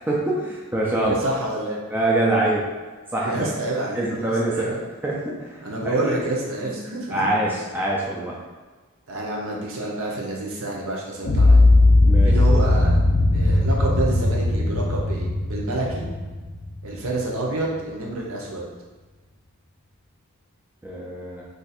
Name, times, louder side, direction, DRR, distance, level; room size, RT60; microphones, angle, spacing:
voice 1, 0.1-1.2 1.9-2.7 3.1-3.5 3.9-4.7 5.0-6.1 7.1-8.4 12.1-12.4 20.8-21.4, right 1 dB, 10° right, -4 dB, 0.3 m, -24 dB
voice 2, 0.9-1.8 3.2-4.8 5.6-7.3 9.1-11.6 12.2-13.0 13.3-16.1 16.8-18.6, right 2 dB, 60° right, -2 dB, 0.7 m, -28 dB
sound 1, 11.2-17.3, left 2 dB, 70° left, 0.6 m, -18 dB
2.5 x 2.4 x 4.0 m, 1.3 s
head